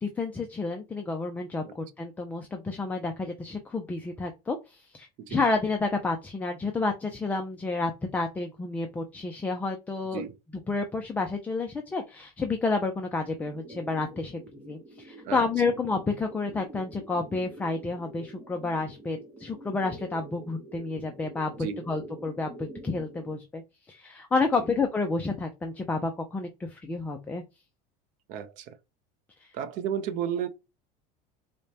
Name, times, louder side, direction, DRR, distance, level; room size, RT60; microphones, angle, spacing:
voice 1, 0.0-10.2 10.7-23.6 23.9-27.4 29.4-29.5, left 3 dB, 10° left, 0.3 m, -30 dB
sound 1, 13.4-23.4, right 2 dB, 20° right, 1.0 m, -47 dB
voice 2, 28.3-28.8 29.5-30.5, right 9 dB, 45° right, 0.5 m, -33 dB
4.9 x 2.1 x 2.7 m
cardioid pair, 170°, 18 cm